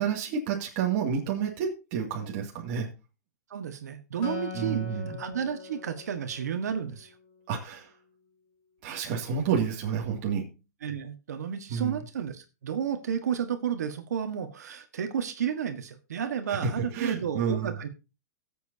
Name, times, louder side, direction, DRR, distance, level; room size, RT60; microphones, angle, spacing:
voice 1, 0.0-2.9 4.5-5.2 7.5-7.9 8.8-10.5 11.7-12.0 16.5-17.8, right 7 dB, 30° right, -1 dB, 2.4 m, -30 dB
voice 2, 3.5-4.8 5.2-7.1 10.8-17.9, right 8 dB, 75° right, 7 dB, 1.6 m, -32 dB
Acoustic guitar, 4.2-7.7, left 6 dB, 25° left, 2.7 m, -42 dB
18.5 x 7.9 x 2.8 m, 0.29 s
hypercardioid pair, 170°, 9 cm